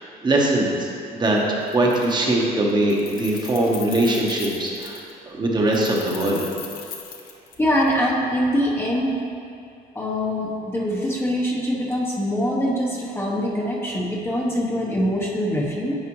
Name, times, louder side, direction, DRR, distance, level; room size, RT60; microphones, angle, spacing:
voice 1, 0.0-5.0 5.3-6.5, right 1 dB, 25° right, -2 dB, 1.0 m, -21 dB
Keys jangling, 1.2-1.4 1.7-2.4 2.7-5.1 5.7-7.9, left 7 dB, 60° left, 0.8 m, -39 dB
voice 2, 7.6-9.2 9.9-15.9, equal, 15° left, -3 dB, 0.9 m, -23 dB
9.7 x 4.9 x 3.1 m, 2.4 s
cardioid pair, 110°, 17 cm